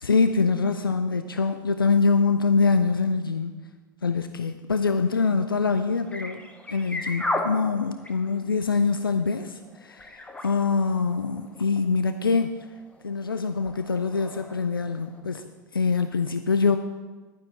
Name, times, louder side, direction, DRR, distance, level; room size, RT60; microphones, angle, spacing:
voice 1, 0.0-3.6 4.0-12.7 13.0-15.4 15.7-16.8, left 4 dB, 85° left, 8 dB, 0.5 m, -24 dB
sound 1, 5.8-15.2, left 2 dB, 10° left, 1.2 m, -37 dB
11.0 x 9.5 x 3.8 m, 1.3 s
figure-of-eight pair, 80°, 11 cm